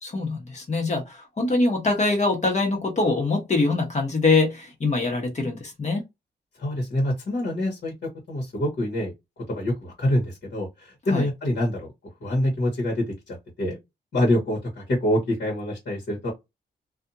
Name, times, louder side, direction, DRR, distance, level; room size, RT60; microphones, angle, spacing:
voice 1, 0.0-6.0 11.1-11.2, left 3 dB, 40° left, 1.2 m, -23 dB
voice 2, 6.6-9.1 9.5-11.9 12.2-13.8 14.1-16.3, left 1 dB, 65° left, 1.3 m, -26 dB
2.6 x 2.4 x 2.7 m
wide cardioid pair, 115°, 18 cm